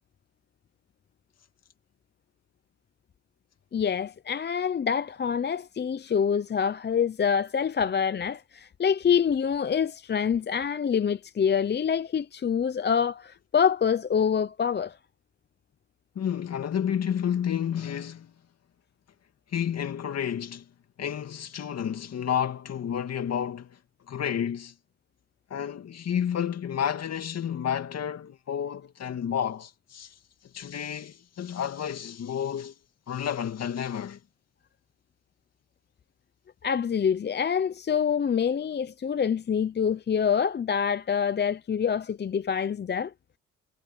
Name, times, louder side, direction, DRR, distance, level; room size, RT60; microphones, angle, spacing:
voice 1, 3.7-15.0 36.6-43.1, left 7 dB, 35° left, 0.8 m, -26 dB
voice 2, 16.1-18.3 19.5-20.7 21.0-23.8 24.1-24.7 25.5-30.2 30.4-32.7 33.1-34.2, left 9 dB, 55° left, 2.4 m, -30 dB
cardioid pair, 90°, 30 cm